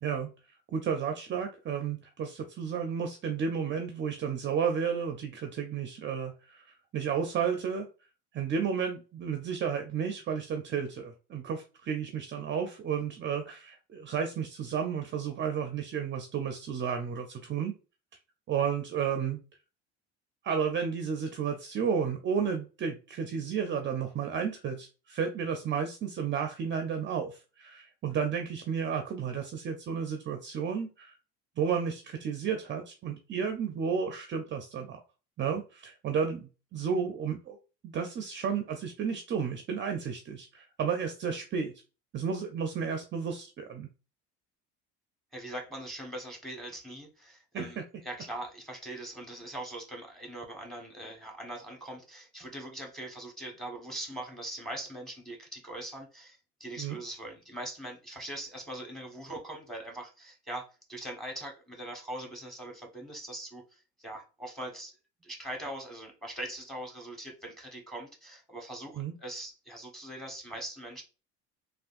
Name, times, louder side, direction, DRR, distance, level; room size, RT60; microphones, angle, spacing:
voice 1, 0.7-7.9 8.3-17.7 18.5-19.4 20.4-31.2 31.6-35.0 35.4-37.6 37.8-41.7 42.1-43.9 47.5-47.7 56.8-57.0 69.0-69.1, right 7 dB, 35° right, 5 dB, 0.5 m, -32 dB
voice 2, 45.3-64.9 65.2-71.0, right 1 dB, ahead, 1 dB, 1.3 m, -41 dB
3.4 x 2.4 x 2.5 m, 0.32 s
supercardioid pair, 80°, 33 cm